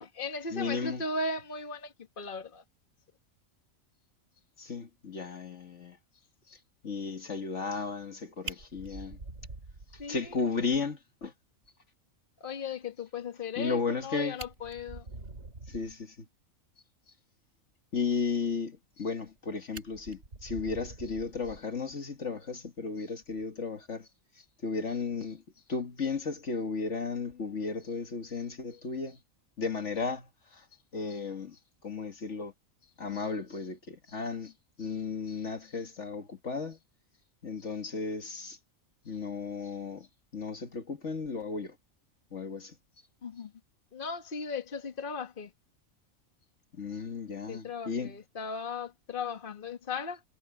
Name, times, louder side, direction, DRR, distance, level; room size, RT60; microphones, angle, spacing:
voice 1, 0.0-2.6 10.0-10.4 12.4-15.1 43.2-43.5 43.9-45.5 47.5-50.2, left 4 dB, 40° left, 1.7 m, -37 dB
voice 2, 0.5-1.0 4.6-6.0 6.5-6.6 6.8-9.2 10.1-11.3 13.6-14.4 15.7-16.3 17.9-24.1 24.6-25.4 25.7-29.2 29.6-30.7 30.9-32.5 33.0-34.5 34.8-36.8 37.4-38.6 39.1-40.1 40.3-41.8 42.3-42.8 46.8-48.2, left 4 dB, 60° left, 2.1 m, -34 dB
Fire, 8.4-10.4 10.7-10.8 11.2-11.3 11.6-11.7 13.9-14.0 14.3-16.0 18.8-19.4 19.7-21.9 23.2-23.4, right 3 dB, 60° right, 3.2 m, -45 dB
omnidirectional pair, 1.4 m